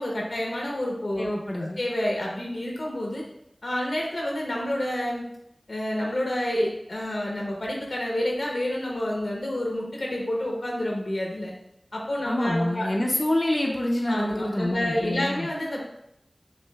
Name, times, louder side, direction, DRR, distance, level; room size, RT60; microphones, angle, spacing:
voice 1, 0.0-1.3 1.6-3.2 3.6-5.2 5.7-11.5 11.9-12.9 14.1-15.8, left 1 dB, 80° left, -2 dB, 0.9 m, -29 dB
voice 2, 1.1-1.8 12.2-15.5, left 1 dB, 40° left, -1 dB, 0.5 m, -26 dB
6.2 x 2.5 x 2.3 m, 0.78 s
wide cardioid pair, 40°, 0 cm